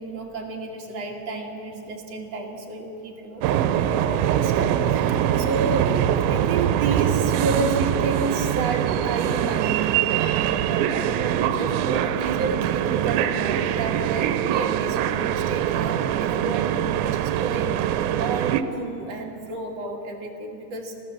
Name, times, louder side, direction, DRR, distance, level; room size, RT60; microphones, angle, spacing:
voice 1, 0.0-9.9 10.4-17.9 18.2-21.0, right 3 dB, 45° right, 0 dB, 2.4 m, -31 dB
sound 1, 3.4-18.6, right 10 dB, 80° right, 3.0 m, -23 dB
27.0 x 16.5 x 7.5 m, 2.7 s
omnidirectional pair, 5.2 m